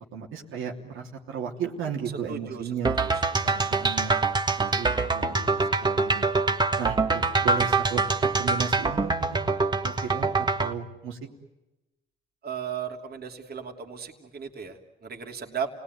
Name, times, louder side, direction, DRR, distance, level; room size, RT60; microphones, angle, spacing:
voice 1, 0.1-3.0 3.4-4.1 4.6-6.4 6.8-8.0 8.4-9.6 9.8-11.2, right 7 dB, 90° right, 0 dB, 3.2 m, -35 dB
voice 2, 2.3-2.6 3.0-3.1 12.4-15.7, right 7 dB, 50° right, 2 dB, 3.0 m, -35 dB
sound 1, 2.8-10.7, right 3 dB, 20° right, 1.6 m, -25 dB
29.5 x 19.0 x 9.6 m, 1.0 s
cardioid pair, 90°, 20 cm